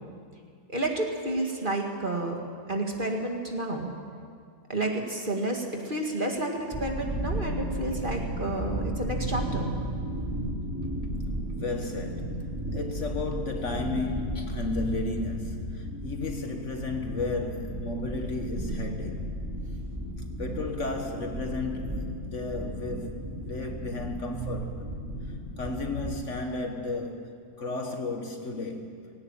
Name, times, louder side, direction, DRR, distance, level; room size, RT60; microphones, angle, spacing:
voice 1, 0.7-2.4 2.7-3.9 4.7-9.7, right 1 dB, 30° right, 2.2 m, -30 dB
sound 1, 6.7-26.2, right 1 dB, 10° right, 3.0 m, -34 dB
voice 2, 11.5-19.3 20.4-24.9 25.6-29.0, left 3 dB, 45° left, 1.7 m, -33 dB
19.5 x 17.5 x 9.0 m
omnidirectional pair, 1.7 m